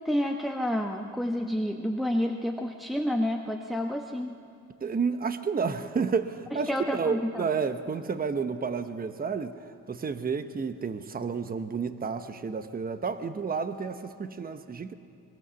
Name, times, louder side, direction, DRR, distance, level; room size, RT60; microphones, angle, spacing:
voice 1, 0.0-4.4 6.7-7.5, equal, ahead, 2 dB, 1.2 m, -29 dB
voice 2, 4.8-9.5 9.9-14.9, right 5 dB, 30° right, 9 dB, 1.1 m, -31 dB
23.0 x 22.0 x 7.0 m, 2.6 s
cardioid pair, 90°, 30 cm